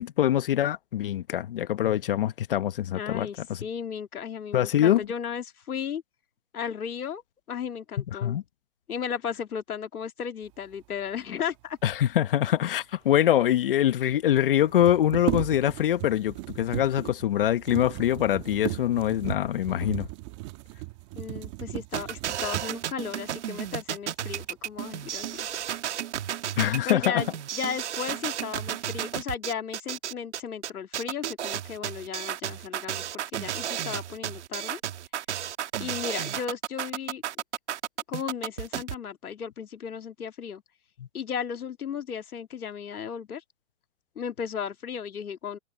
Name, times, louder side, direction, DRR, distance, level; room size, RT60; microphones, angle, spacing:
voice 1, 0.0-3.7 4.5-5.1 8.1-8.4 11.8-20.1 26.6-27.2 41.0-41.1, left 11 dB, 40° left, 1.0 m, -24 dB
voice 2, 2.9-6.0 6.5-7.2 7.5-8.4 8.9-11.8 21.2-25.5 26.8-34.8 35.8-37.2 38.1-40.6 41.1-43.4 44.2-45.6, left 7 dB, 85° left, 2.1 m, -35 dB
sound 1, 13.1-13.2 13.4-13.5 14.6-23.0 23.6-23.8 24.2-24.8 25.2-25.7, right 20 dB, 20° right, 1.3 m, -36 dB
sound 2, 21.9-38.9, right 11 dB, 50° right, 1.6 m, -33 dB
hypercardioid pair, 160°, 43 cm